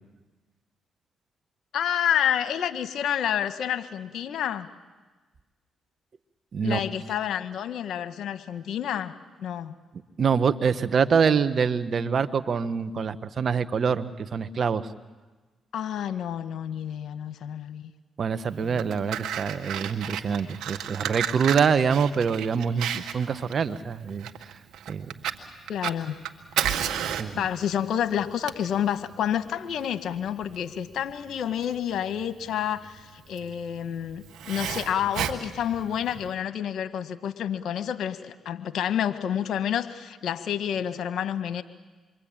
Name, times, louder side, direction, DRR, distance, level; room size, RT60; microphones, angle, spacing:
voice 1, 1.7-4.7 6.6-9.8 15.7-17.9 18.6-18.8 25.7-26.2 27.4-41.6, left 9 dB, 70° left, 10 dB, 1.6 m, -29 dB
voice 2, 10.2-14.9 18.2-24.3 24.9-25.1 27.2-27.4, right 6 dB, 55° right, 11 dB, 1.3 m, -25 dB
Fire, 18.6-36.3, right 9 dB, 75° right, 1.7 m, -33 dB
27.5 x 23.5 x 8.9 m, 1.3 s
supercardioid pair, 50°, 0 cm